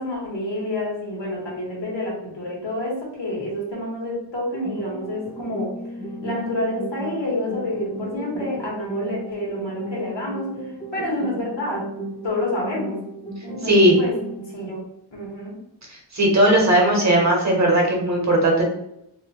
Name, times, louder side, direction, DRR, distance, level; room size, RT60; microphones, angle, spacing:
voice 1, 0.0-5.7 6.2-11.9 12.2-13.0 13.4-14.2 14.5-14.8 15.1-15.6, left 1 dB, 70° left, -3 dB, 1.2 m, -28 dB
sound 1, 4.5-14.5, right 1 dB, 15° left, 0.5 m, -35 dB
voice 2, 13.6-13.9 16.1-18.7, right 1 dB, 40° right, -1 dB, 0.8 m, -17 dB
2.7 x 2.1 x 2.8 m, 0.80 s
wide cardioid pair, 60°, 44 cm